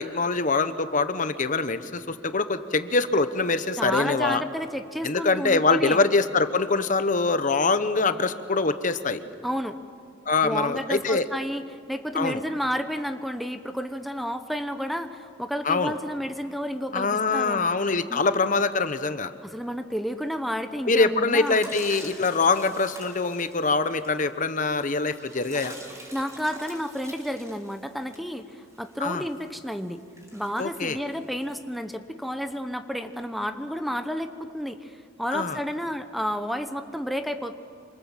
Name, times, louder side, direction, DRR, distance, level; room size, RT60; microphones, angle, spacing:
voice 1, 0.0-4.4 5.0-9.2 10.3-11.3 12.1-12.4 15.6-15.9 16.9-19.3 20.9-25.7 29.0-29.2 30.6-31.0 35.3-35.6, left 3 dB, 45° left, 10 dB, 1.0 m, -24 dB
voice 2, 3.8-6.0 9.4-9.8 10.4-11.6 11.9-17.6 18.1-18.2 19.4-21.6 26.1-30.0 30.3-37.5, equal, ahead, 8 dB, 0.9 m, -31 dB
sound 1, 21.4-31.6, right 1 dB, 15° right, 5.6 m, -45 dB
27.0 x 25.5 x 7.4 m, 2.2 s
head